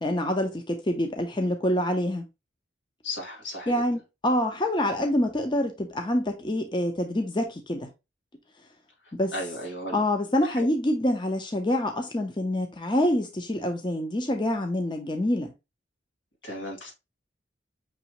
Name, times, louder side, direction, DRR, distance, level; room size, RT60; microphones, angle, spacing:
voice 1, 0.0-2.2 3.7-7.9 9.1-9.3 9.9-15.5, left 1 dB, 25° left, 0.6 m, -26 dB
voice 2, 3.0-3.8 9.3-10.0 10.5-10.7 16.4-16.9, left 1 dB, 90° left, 2.3 m, -35 dB
6.0 x 3.0 x 2.9 m
head